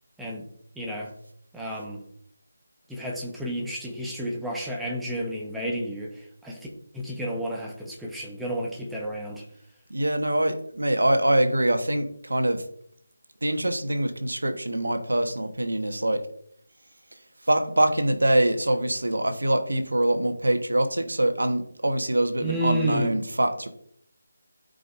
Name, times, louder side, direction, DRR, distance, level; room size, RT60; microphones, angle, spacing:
voice 1, 0.8-1.1 1.5-2.0 2.9-6.1 6.4-6.7 6.9-9.4 22.4-23.1, right 1 dB, 5° right, -2 dB, 1.1 m, -31 dB
voice 2, 9.9-12.6 13.4-16.2 17.5-23.7, right 1 dB, 70° right, 7 dB, 1.2 m, -24 dB
13.5 x 5.2 x 2.6 m, 0.68 s
figure-of-eight pair, 160°, 0 cm